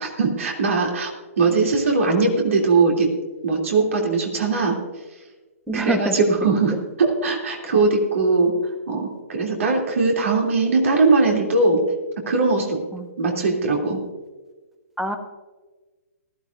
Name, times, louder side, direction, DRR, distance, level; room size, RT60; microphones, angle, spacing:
voice 1, 0.2-1.1 1.4-3.1 3.4-4.8 5.7-8.5 8.9-11.8 12.3-12.8 13.2-14.0, right 3 dB, 60° right, 0 dB, 3.0 m, -20 dB
voice 2, 5.7-6.1 6.4-6.8 7.7-7.8 12.9-13.1 15.0-15.2, right 2 dB, 5° right, 5 dB, 1.2 m, -26 dB
19.5 x 13.0 x 2.6 m, 1.3 s
figure-of-eight pair, 125°, 8 cm